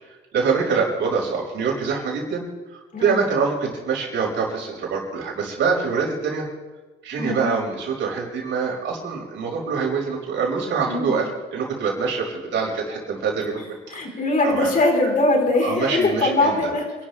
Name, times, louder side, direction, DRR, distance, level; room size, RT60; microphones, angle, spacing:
voice 1, 0.3-2.4 2.7-6.5 7.0-13.6 14.4-14.7 15.6-16.6, right 5 dB, 70° right, -2 dB, 5.9 m, -25 dB
voice 2, 7.2-7.5 10.9-11.2 13.9-16.9, left 2 dB, 45° left, 1 dB, 4.3 m, -21 dB
28.5 x 12.5 x 3.4 m, 1.2 s
cardioid pair, 90°, 20 cm